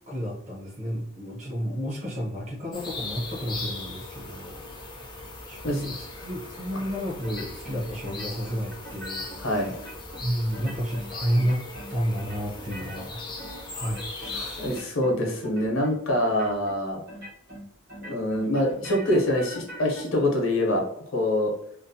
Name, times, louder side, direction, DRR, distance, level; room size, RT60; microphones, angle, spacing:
voice 1, 0.0-4.6 4.9-5.2 5.5-9.7 10.2-11.6 11.9-13.2 13.7-14.7 15.2-15.4, equal, 35° right, -2 dB, 0.7 m, -31 dB
sound 1, 2.7-14.8, left 3 dB, 20° left, 0.4 m, -39 dB
sound 2, 7.2-7.8 8.0-9.4 9.7-10.2 10.5-11.1 11.3-11.9 12.2-14.4 14.6-15.2 15.4-15.9 16.2-16.8 17.1-17.6 17.9-20.0, right 1 dB, 50° right, 1.1 m, -42 dB
voice 2, 9.4-9.7 14.3-17.0 18.0-20.8 21.1-21.5, left 1 dB, 70° left, 0 dB, 0.7 m, -25 dB
2.5 x 2.0 x 2.6 m, 0.70 s
head